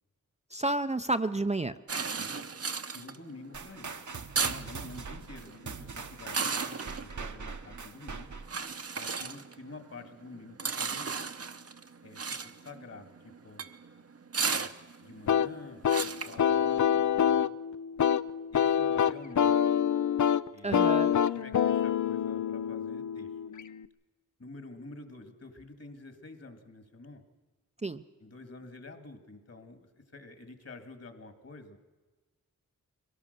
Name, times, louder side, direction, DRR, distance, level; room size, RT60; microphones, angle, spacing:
voice 1, 0.5-1.7 20.6-21.1 27.8-28.0, right 2 dB, 20° right, 9 dB, 0.5 m, -30 dB
sound 1, 1.9-17.1, right 5 dB, 50° right, 0.9 m, -36 dB
voice 2, 2.0-2.5 2.9-4.0 4.4-8.3 8.9-11.1 12.0-13.7 14.4-14.7 15.0-17.4 18.5-19.6 20.5-23.3 24.4-27.2 28.2-31.8, left 3 dB, 50° left, 7 dB, 2.2 m, -49 dB
sound 2, 3.5-8.6, right 5 dB, 70° right, 1.2 m, -42 dB
sound 3, 15.3-23.9, left 8 dB, 65° left, 0.5 m, -27 dB
23.0 x 17.5 x 6.7 m, 1.3 s
wide cardioid pair, 75°, 31 cm